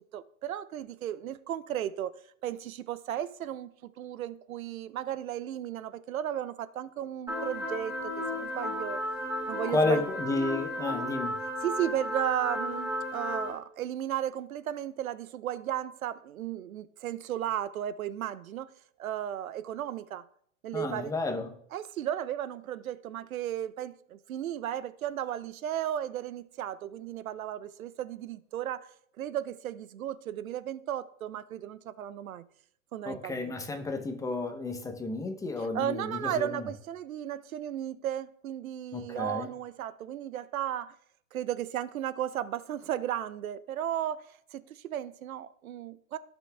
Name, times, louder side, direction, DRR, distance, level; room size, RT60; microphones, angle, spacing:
voice 1, 0.1-2.1 2.4-9.0 9.5-10.0 11.6-18.7 19.0-20.2 20.6-21.1 21.7-28.9 29.2-32.4 32.9-33.5 35.6-40.9 41.3-46.2, right 11 dB, 85° right, 0.8 m, -35 dB
sound 1, 7.3-13.5, left 1 dB, 10° right, 4.1 m, -34 dB
voice 2, 9.7-11.4 20.7-21.5 33.1-36.6 38.9-39.5, left 3 dB, 10° left, 0.8 m, -31 dB
17.5 x 6.0 x 3.4 m
hypercardioid pair, 145°, 41 cm